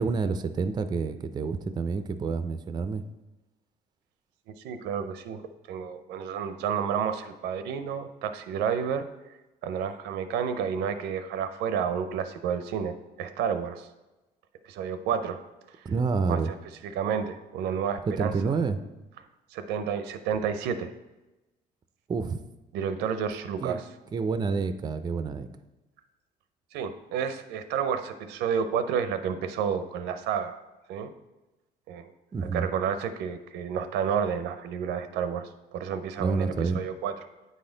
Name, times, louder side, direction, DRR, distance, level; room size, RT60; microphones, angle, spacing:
voice 1, 0.0-3.0 15.8-16.5 18.1-18.8 22.1-22.4 23.6-23.8 24.1-25.5 32.3-32.7 36.2-36.8, right 4 dB, 25° right, 10 dB, 0.4 m, -28 dB
voice 2, 4.5-5.4 5.7-9.1 9.6-13.9 14.7-15.4 16.3-16.4 16.8-18.6 19.5-20.9 22.7-23.8 26.7-30.6 30.9-31.1 31.9-32.1 32.4-37.1, right 7 dB, 90° right, 10 dB, 0.6 m, -30 dB
9.1 x 4.2 x 3.8 m, 1.1 s
cardioid pair, 110°, 17 cm